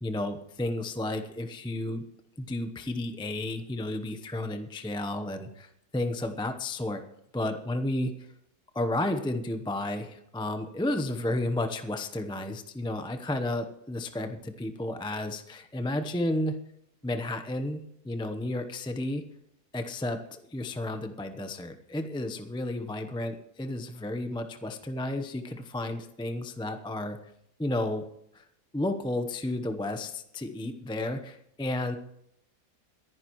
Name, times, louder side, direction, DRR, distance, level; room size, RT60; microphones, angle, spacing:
voice 1, 0.0-2.0 2.4-7.0 7.3-8.3 8.7-16.6 17.0-19.2 19.7-27.2 27.6-28.0 28.3-28.4 28.7-32.0, left 1 dB, 5° left, 7 dB, 0.5 m, -32 dB
23.5 x 11.0 x 3.1 m, 0.74 s
omnidirectional pair, 1.6 m